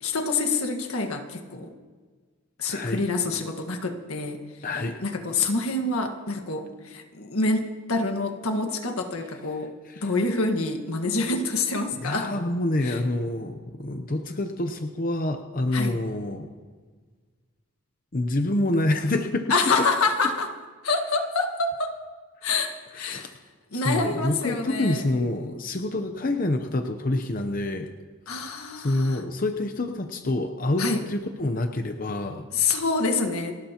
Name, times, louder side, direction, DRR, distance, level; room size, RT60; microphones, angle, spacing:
voice 1, 0.0-1.7 2.6-4.4 5.0-9.7 10.0-12.3 12.8-13.0 15.7-15.9 19.5-20.5 20.8-22.0 22.4-23.3 23.7-25.0 28.3-29.2 30.8-31.0 32.5-33.5, left 3 dB, 80° left, 5 dB, 1.6 m, -26 dB
voice 2, 2.7-3.0 4.6-5.0 9.9-10.1 12.0-16.5 18.1-19.9 22.9-23.3 23.8-27.9 28.3-28.4 28.8-32.5, left 2 dB, 40° left, 5 dB, 0.7 m, -27 dB
29.5 x 12.5 x 3.0 m, 1.4 s
head